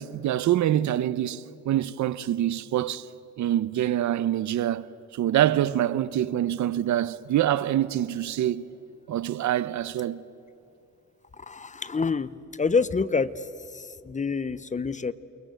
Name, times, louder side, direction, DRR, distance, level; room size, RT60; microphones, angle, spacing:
voice 1, 0.0-3.1 3.4-4.9 5.1-8.6 9.1-10.2, right 12 dB, 70° right, 0.9 m, -25 dB
voice 2, 11.5-12.3 12.6-13.3 13.7-15.1, left 4 dB, 25° left, 0.9 m, -27 dB
29.0 x 23.0 x 8.0 m
cardioid pair, 90°, 30 cm